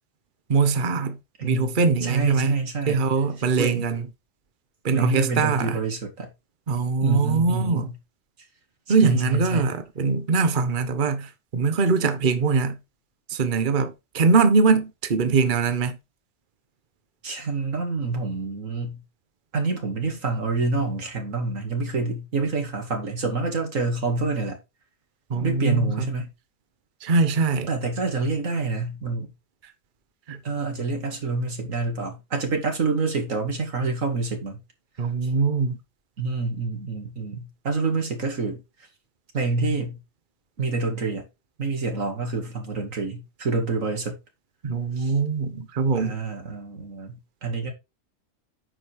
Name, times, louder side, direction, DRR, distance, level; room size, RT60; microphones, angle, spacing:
voice 1, 0.5-1.2 1.4-4.0 4.8-5.8 6.7-7.9 8.9-12.8 13.3-16.0 25.3-26.1 27.0-27.7 30.3-30.4 35.0-35.8 44.6-46.1, right 4 dB, 45° right, 1.0 m, -22 dB
voice 2, 1.4-3.0 3.6-3.9 4.9-6.3 7.0-7.9 8.9-9.7 17.2-19.0 19.5-24.6 25.4-26.3 27.7-29.3 30.4-34.6 35.2-35.3 36.2-38.6 39.3-40.0 40.6-41.3 41.6-44.2 45.0-45.1 46.0-47.7, right 3 dB, 90° right, 2.5 m, -27 dB
9.1 x 5.1 x 4.7 m
omnidirectional pair, 1.3 m